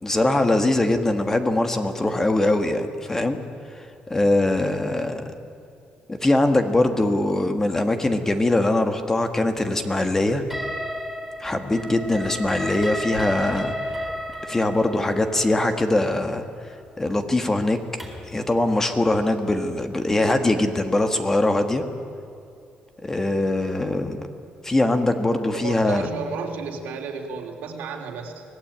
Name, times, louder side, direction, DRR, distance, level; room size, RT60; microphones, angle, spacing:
voice 1, 0.0-3.4 3.7-5.2 6.1-10.4 11.4-14.1 14.5-16.4 17.0-17.8 18.3-21.8 23.0-24.2 24.6-26.1, left 2 dB, 15° left, 7 dB, 1.6 m, -22 dB
sound 1, 10.5-18.3, equal, ahead, 4.4 m, -33 dB
voice 2, 25.5-28.4, right 4 dB, 85° right, 2 dB, 3.4 m, -32 dB
24.5 x 18.0 x 8.8 m, 2.5 s
cardioid pair, 135°, 3 cm